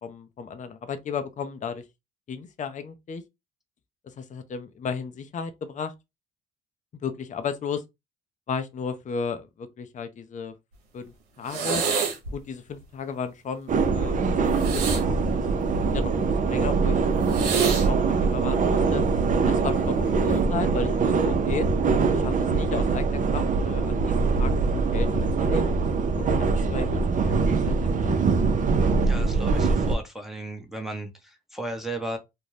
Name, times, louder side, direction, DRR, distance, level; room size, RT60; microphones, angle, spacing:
voice 1, 0.0-1.8 2.3-3.2 4.0-5.9 7.0-7.8 8.5-10.5 10.9-11.8 12.3-14.8 15.3-15.4 15.8-19.0 19.5-21.7 22.1-25.7 26.2-28.1, left 5 dB, 40° left, 0.6 m, -34 dB
sound 1, 11.5-12.3 14.5-16.1 17.3-17.9 18.9-19.3, right 6 dB, 90° right, 0.7 m, -28 dB
sound 2, 13.7-30.0, right 4 dB, 40° right, 0.6 m, -23 dB
voice 2, 29.0-32.2, right 1 dB, ahead, 0.9 m, -35 dB
2.5 x 2.1 x 3.2 m
supercardioid pair, 65°, 20 cm